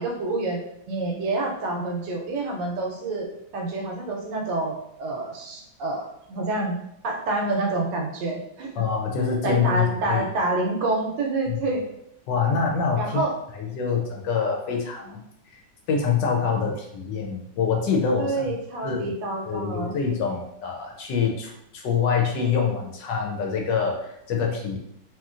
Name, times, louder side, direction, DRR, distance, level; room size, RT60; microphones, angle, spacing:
voice 1, 0.0-3.3 3.5-6.8 7.0-8.7 9.4-11.8 13.0-13.3 18.2-20.0, right 2 dB, 75° right, 0 dB, 1.2 m, -27 dB
voice 2, 8.8-10.2 11.5-11.6 12.3-13.2 13.6-15.2 15.9-18.4 18.8-19.1 19.5-24.8, left 6 dB, 75° left, 1 dB, 1.1 m, -25 dB
2.9 x 2.9 x 2.4 m, 0.79 s
omnidirectional pair, 2.1 m